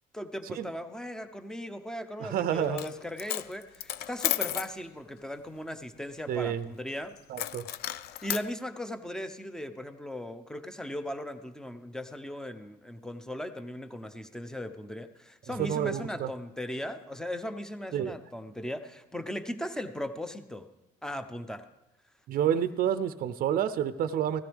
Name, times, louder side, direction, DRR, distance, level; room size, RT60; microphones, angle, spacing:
voice 1, 0.1-7.1 8.2-20.7 21.0-21.6, left 1 dB, 5° left, 9 dB, 0.8 m, -38 dB
voice 2, 2.2-2.8 6.3-6.7 7.3-7.6 15.6-16.3 17.9-18.1 22.3-24.4, right 9 dB, 60° right, 12 dB, 0.6 m, -29 dB
Coin (dropping), 2.6-2.9 3.2-4.7 7.4-8.5, left 12 dB, 70° left, 0.5 m, -33 dB
16.0 x 13.5 x 3.5 m, 1.0 s
cardioid pair, 110°, 17 cm